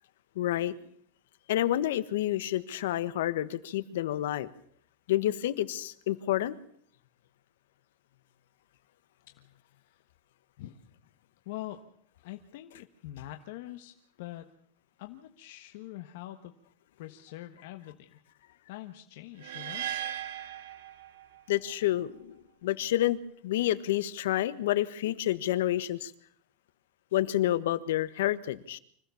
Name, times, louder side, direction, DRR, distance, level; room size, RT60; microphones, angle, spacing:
voice 1, 0.4-0.7 1.5-4.5 5.1-6.6 21.5-22.4 22.6-23.2 23.4-26.1 27.1-28.8, left 13 dB, 75° left, 15 dB, 1.3 m, -29 dB
voice 2, 11.4-11.8 12.2-13.9 14.2-14.5 15.0-16.5 17.0-18.1 18.7-19.8, left 15 dB, 55° left, 7 dB, 1.3 m, -43 dB
sound 1, 19.4-21.6, right 11 dB, 70° right, 1.9 m, -37 dB
25.5 x 16.0 x 7.1 m, 0.63 s
supercardioid pair, 170°, 0 cm